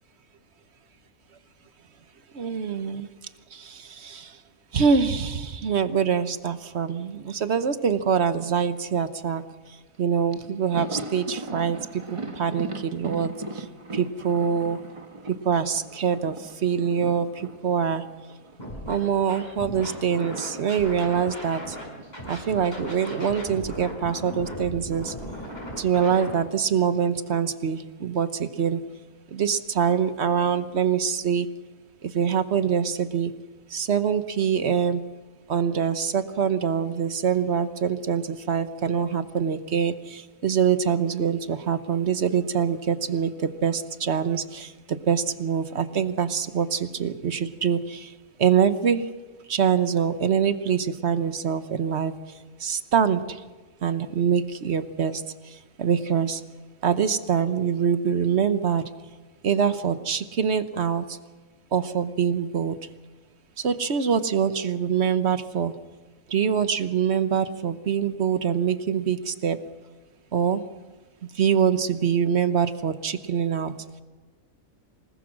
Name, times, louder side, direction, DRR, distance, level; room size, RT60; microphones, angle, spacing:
voice 1, 2.3-3.1 3.5-4.4 4.7-9.4 10.0-13.7 13.9-14.8 15.3-18.0 18.9-21.8 22.3-25.1 25.8-28.8 29.3-31.5 32.0-33.3 33.7-35.0 35.5-48.1 48.4-49.1 49.5-52.1 52.6-53.4 53.8-56.4 56.8-58.8 59.4-61.2 61.7-62.8 63.6-65.7 66.3-69.6 70.3-70.6 71.3-73.7, right 7 dB, 55° right, 11 dB, 1.1 m, -24 dB
Thunder, 9.9-10.0 10.3-19.1 19.4-23.7 24.0-24.1 25.3-26.0, right 3 dB, 25° right, 1.1 m, -39 dB
Scratching (performance technique), 18.6-18.9 19.3-21.8 22.1-26.3, equal, 30° left, 6.6 m, -37 dB
26.5 x 19.0 x 6.3 m, 1.3 s
omnidirectional pair, 1.5 m